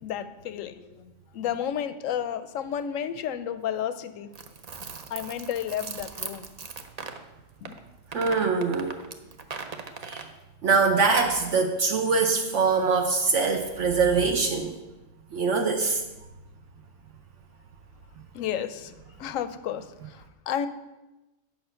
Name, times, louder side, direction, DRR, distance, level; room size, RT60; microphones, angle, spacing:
voice 1, 0.0-4.3 5.1-6.5 7.6-7.8 18.3-18.9 19.2-20.7, left 9 dB, 85° left, 12 dB, 1.0 m, -32 dB
sound 1, 4.3-7.2 7.6-7.8 8.1-10.3, right 5 dB, 45° right, 0.5 m, -39 dB
voice 2, 8.1-9.0 10.0-10.3 10.6-14.7 15.3-16.0, right 4 dB, 70° right, 3 dB, 1.0 m, -23 dB
8.7 x 5.7 x 5.6 m, 1.1 s
omnidirectional pair, 1.3 m